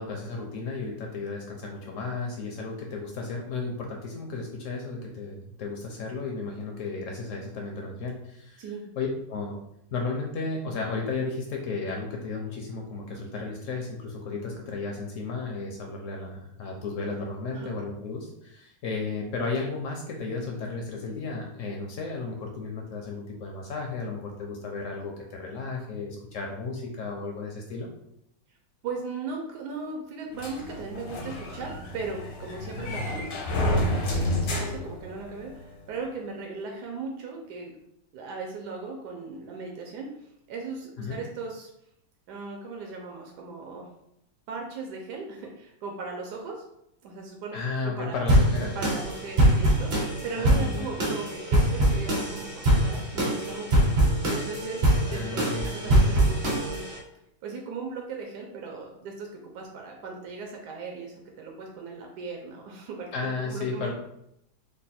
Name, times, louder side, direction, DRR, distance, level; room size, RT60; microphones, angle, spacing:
voice 1, 0.0-8.6 9.0-9.5 9.9-27.9 32.8-33.1 41.0-41.2 47.5-49.0 50.4-50.9 55.1-56.1 63.1-63.9, left 3 dB, 70° left, 1 dB, 0.7 m, -34 dB
voice 2, 28.8-37.7 38.1-41.7 42.3-43.9 44.5-46.6 47.0-47.6 47.8-48.3 48.7-53.8 54.3-56.8 57.4-63.9, right 4 dB, 80° right, 1 dB, 1.1 m, -38 dB
sound 1, 30.4-35.6, left 1 dB, 85° left, 1.4 m, -30 dB
sound 2, 48.3-57.0, right 1 dB, 50° right, 0.8 m, -23 dB
3.2 x 2.2 x 4.1 m, 0.80 s
omnidirectional pair, 1.8 m